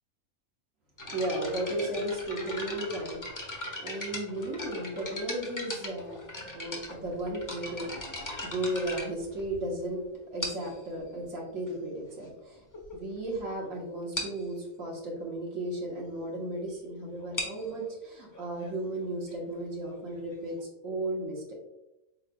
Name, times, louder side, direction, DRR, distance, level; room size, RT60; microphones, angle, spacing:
sound 1, 1.0-9.8 10.4-10.8 11.7-11.8 12.4-12.5 12.7-12.9 13.3-13.4 13.6-13.7 14.1-14.4 17.1-20.6, left 1 dB, 30° left, 0.4 m, -39 dB
voice 1, 1.1-6.2 6.5-10.0 10.3-12.6 12.9-21.5, right 1 dB, 65° right, -2 dB, 1.5 m, -35 dB
4.1 x 3.8 x 2.2 m, 0.92 s
omnidirectional pair, 1.5 m